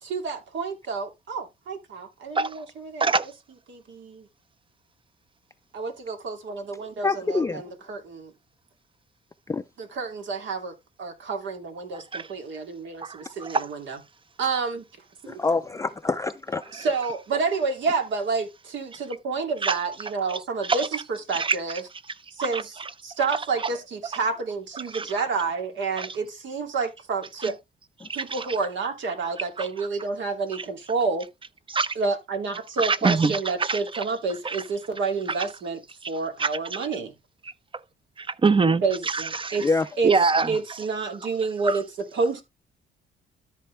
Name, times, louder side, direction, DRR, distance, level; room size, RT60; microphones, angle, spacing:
voice 1, 0.0-3.1 3.7-4.3 5.7-8.3 9.8-10.7 11.0-14.0 14.4-14.8 15.2-15.4 16.7-21.8 22.3-22.8 23.0-27.6 28.1-31.3 32.0-37.1 38.8-39.7 40.0-40.1 40.5-42.4, right 4 dB, 70° right, 2.6 m, -29 dB
voice 2, 7.0-7.6 9.5-9.6 15.3-16.6 28.0-28.1 39.6-39.9, left 3 dB, 15° left, 0.4 m, -26 dB
voice 3, 13.0-13.6 19.6-19.7 20.7-20.9 21.3-21.6 22.4-22.9 24.9-25.1 26.0-26.1 28.1-28.4 29.6-29.7 31.7-31.9 32.8-34.0 34.4-34.6 35.4-35.5 36.4-36.5 38.2-39.6 40.0-40.6 41.7-41.8, right 4 dB, 25° right, 0.7 m, -24 dB
13.0 x 4.5 x 3.3 m
cardioid pair, 90°, 20 cm